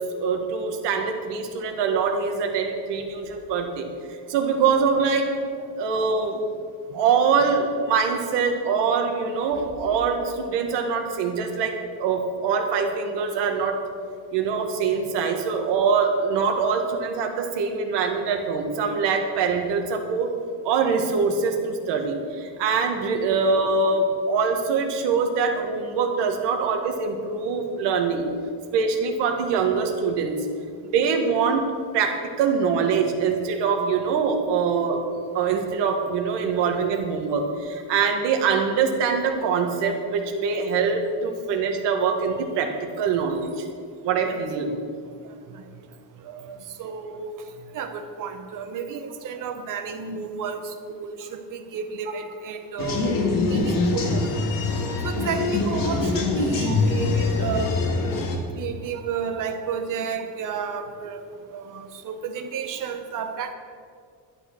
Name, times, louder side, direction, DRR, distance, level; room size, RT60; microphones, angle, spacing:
voice 1, 0.2-3.9 4.3-6.4 6.9-13.8 14.3-20.3 20.6-28.2 28.7-30.3 30.9-31.6 31.9-43.7 44.0-44.7 56.7-56.8, right 5 dB, 75° right, 3 dB, 1.9 m, -24 dB
voice 2, 46.2-47.3 47.7-54.4 55.0-57.7 58.6-61.2 61.5-63.5, right 6 dB, 45° right, 7 dB, 1.2 m, -32 dB
sound 1, 52.8-58.4, left 3 dB, 50° left, 2.0 m, -24 dB
11.5 x 11.0 x 6.2 m, 2.1 s
cardioid pair, 175°, 43 cm